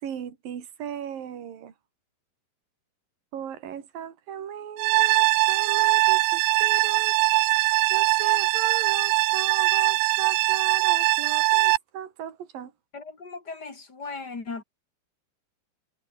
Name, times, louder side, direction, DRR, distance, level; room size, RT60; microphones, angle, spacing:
voice 1, 0.0-1.7 3.3-7.2 7.9-12.7, right 9 dB, 55° right, 4.4 m, -37 dB
sound 1, 4.8-11.8, right 19 dB, 85° right, 2.1 m, -21 dB
voice 2, 12.9-14.6, left 4 dB, 25° left, 3.0 m, -37 dB
omnidirectional pair, 5.2 m